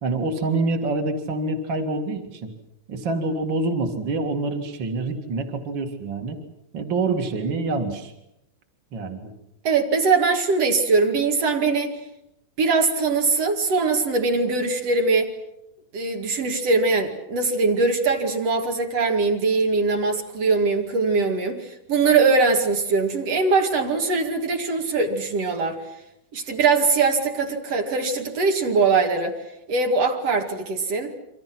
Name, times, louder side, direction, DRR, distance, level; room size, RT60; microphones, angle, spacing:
voice 1, 0.0-2.5 2.9-6.4 6.7-8.1 8.9-9.3, right 3 dB, 75° right, 5 dB, 1.0 m, -26 dB
voice 2, 9.6-11.9 12.6-15.3 15.9-25.8 26.3-29.4 29.7-31.1, right 4 dB, 45° right, 3 dB, 2.3 m, -21 dB
29.5 x 25.0 x 6.0 m, 0.85 s
omnidirectional pair, 5.9 m